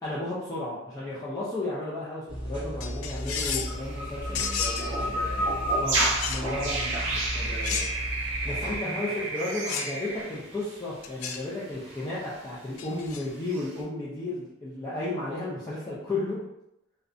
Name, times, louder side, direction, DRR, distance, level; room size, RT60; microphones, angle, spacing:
voice 1, 0.0-4.5 5.8-7.5 8.4-16.4, left 2 dB, 15° left, -9 dB, 0.4 m, -33 dB
sound 1, 2.3-8.8, equal, 25° right, 0.8 m, -34 dB
sound 2, 2.8-3.8 4.3-4.9 6.2-6.5 7.6-8.2 9.7-10.0 11.0-11.5 12.8-13.2, left 7 dB, 85° left, 0.3 m, -33 dB
sound 3, 3.7-10.8 11.2-11.4 11.9-12.3 13.5-13.7, right 1 dB, 60° right, 0.6 m, -31 dB
voice 2, 4.2-5.6 7.4-7.9 8.4-9.3, right 1 dB, 40° left, -8 dB, 1.1 m, -42 dB
2.5 x 2.1 x 2.5 m, 0.84 s
head